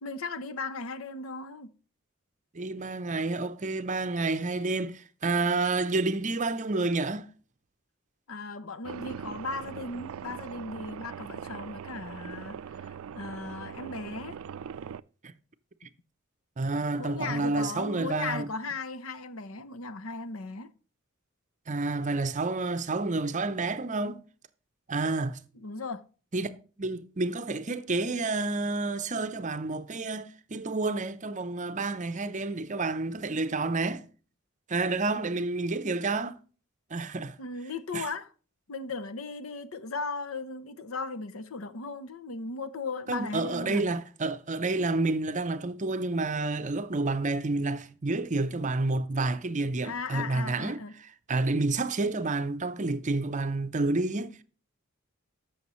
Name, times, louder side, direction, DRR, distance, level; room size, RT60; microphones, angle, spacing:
voice 1, 0.0-1.7 8.3-14.4 17.0-20.7 25.5-26.0 37.4-38.3 38.7-43.9 49.8-50.9, left 3 dB, 85° left, 0.8 m, -37 dB
voice 2, 2.5-7.3 15.2-15.3 16.6-18.5 21.7-24.2 24.9-25.4 26.3-34.0 34.7-36.4 36.9-37.4 37.9-38.1 43.1-50.8 51.3-54.4, right 3 dB, 35° right, 0.6 m, -29 dB
sound 1, 8.8-15.0, right 7 dB, 75° right, 0.3 m, -41 dB
14.0 x 6.4 x 3.1 m
head